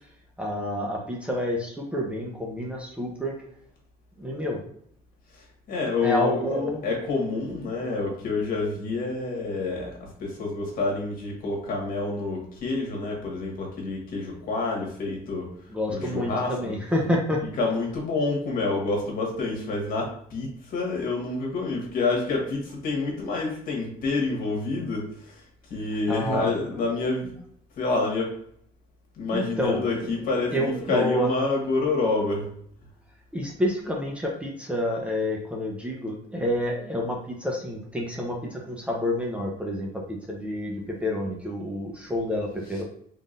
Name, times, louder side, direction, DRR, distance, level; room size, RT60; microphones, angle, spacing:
voice 1, 0.4-3.3 4.2-4.6 6.0-6.8 15.7-17.4 26.1-26.5 29.3-30.2 30.5-31.3 33.3-42.8, left 1 dB, 5° right, -2 dB, 0.8 m, -28 dB
voice 2, 5.3-6.4 6.8-15.5 15.9-16.5 17.6-25.4 25.7-27.3 27.8-28.3 29.2-32.5, left 3 dB, 55° left, -1 dB, 1.6 m, -28 dB
3.8 x 3.7 x 2.5 m, 0.65 s
cardioid pair, 110°, 17 cm